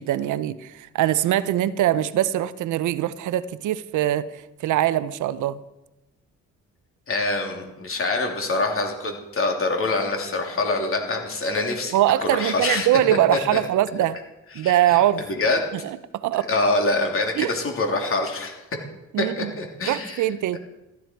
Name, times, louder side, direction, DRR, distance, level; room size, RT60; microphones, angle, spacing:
voice 1, 0.0-5.6 11.9-14.2 14.6-15.2 15.8-16.5 17.4-17.5 19.1-19.5 19.9-20.6, right 12 dB, 75° right, 0.7 m, -22 dB
voice 2, 7.1-13.0 13.3-13.6 14.5-15.6 16.5-18.6 19.4-20.2 20.5-20.6, left 2 dB, 45° left, 3.1 m, -25 dB
15.0 x 12.0 x 4.5 m
cardioid pair, 90°, 30 cm